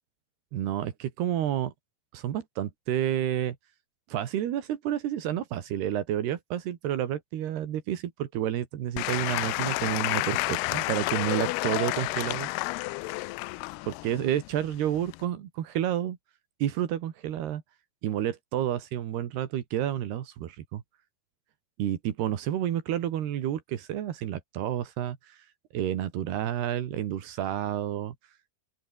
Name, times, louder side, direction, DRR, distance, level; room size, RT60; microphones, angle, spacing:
voice 1, 0.5-1.7 2.1-3.6 4.1-12.5 13.9-16.2 16.6-17.6 18.0-20.8 21.8-25.5 25.7-28.2, right 11 dB, 85° right, 4.0 m, -30 dB
Applause / Crowd, 9.0-15.3, left 23 dB, 85° left, 2.6 m, -31 dB
open air
omnidirectional pair, 4.5 m